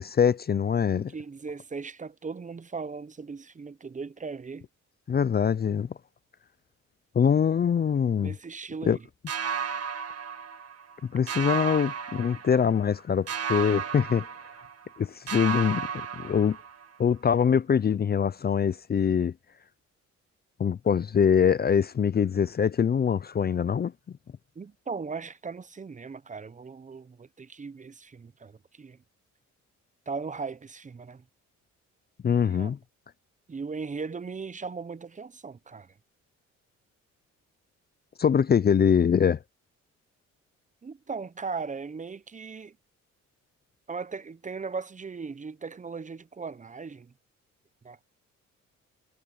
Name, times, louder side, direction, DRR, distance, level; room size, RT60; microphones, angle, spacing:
voice 1, 0.0-1.1 5.1-5.9 7.1-8.3 8.9-9.0 11.1-14.3 15.0-15.9 16.2-16.6 17.0-19.3 20.6-23.9 32.2-32.8 38.2-39.4, left 7 dB, 30° left, 0.5 m, -23 dB
voice 2, 0.9-4.7 8.2-9.1 24.6-29.0 30.1-31.2 32.4-32.7 33.5-35.9 40.8-42.8 43.9-47.1 47.8-48.1, right 4 dB, 25° right, 0.8 m, -38 dB
sound 1, 9.3-11.0 11.3-12.9 13.3-15.0 15.3-17.0, right 7 dB, 55° right, 2.0 m, -34 dB
cardioid pair, 90°, 30 cm